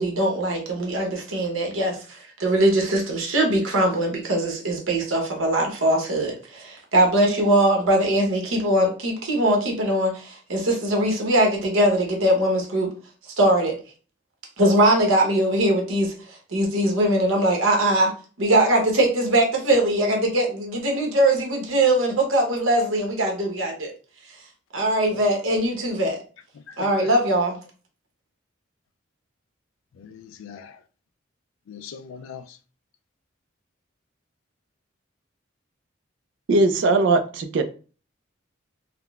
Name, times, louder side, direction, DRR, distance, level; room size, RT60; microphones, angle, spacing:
voice 1, 0.0-12.9 13.4-13.8 14.6-18.1 18.4-23.9 24.7-26.2 26.8-27.6, right 1 dB, 85° right, 0.9 m, -21 dB
voice 2, 26.5-27.1 30.0-30.8 31.7-32.6, left 7 dB, 80° left, 0.3 m, -40 dB
voice 3, 36.5-37.6, right 2 dB, 65° right, 0.4 m, -19 dB
3.6 x 2.1 x 2.3 m
head